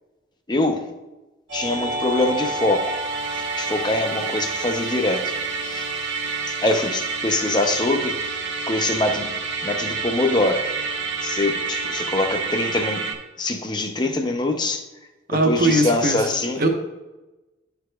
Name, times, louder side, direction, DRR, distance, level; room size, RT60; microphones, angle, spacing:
voice 1, 0.5-0.9 1.5-3.0 3.3-5.3 5.6-5.9 6.5-8.2 8.7-9.3 9.6-10.8 11.2-13.1 13.4-14.8 15.3-16.6, left 2 dB, 20° left, 5 dB, 0.6 m, -24 dB
Musical instrument, 1.5-13.1, right 4 dB, 70° right, 1.1 m, -28 dB
voice 2, 15.3-16.3 16.6-16.7, right 1 dB, 50° right, 3 dB, 0.9 m, -20 dB
11.0 x 4.8 x 2.3 m, 1.1 s
head